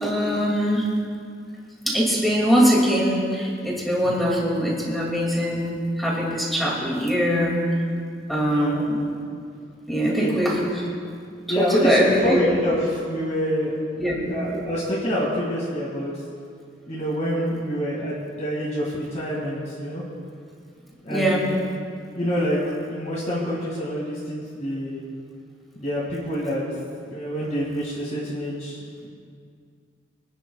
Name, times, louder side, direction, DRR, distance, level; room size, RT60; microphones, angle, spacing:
voice 1, 0.0-0.9 1.9-7.6 8.3-9.0 9.9-10.7 11.7-12.4 14.0-14.3 21.1-21.5, equal, ahead, -4 dB, 2.4 m, -22 dB
voice 2, 11.5-13.8 14.2-16.1 16.9-20.0 21.0-21.5 22.2-22.6 22.9-25.0 25.8-26.6 27.1-29.1, equal, 40° left, -7 dB, 2.3 m, -26 dB
25.0 x 10.0 x 2.4 m, 2.2 s
head